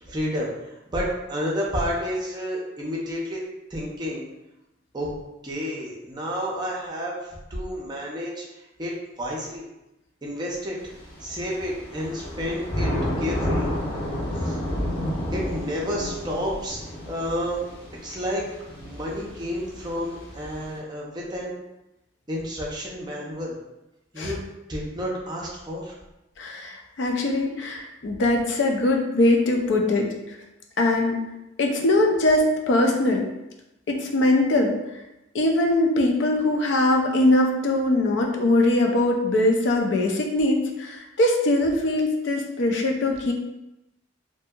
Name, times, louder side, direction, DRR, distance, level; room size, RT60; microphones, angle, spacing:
voice 1, 0.0-3.4 3.7-4.3 4.9-5.1 5.4-8.4 8.8-9.7 10.2-10.8 11.2-12.9 13.2-13.7 14.3-14.6 15.3-16.8 17.1-17.6 18.0-18.4 18.8-21.5 22.3-23.6 24.1-24.4 24.7-26.0, equal, 20° right, -4 dB, 0.5 m, -30 dB
Thunder / Rain, 10.8-20.8, equal, 25° left, 0.8 m, -31 dB
voice 2, 26.4-30.4 30.8-31.2 31.6-33.3 33.9-34.8 35.3-43.3, left 2 dB, 65° left, 1 dB, 0.4 m, -22 dB
2.6 x 2.6 x 2.3 m, 0.94 s
head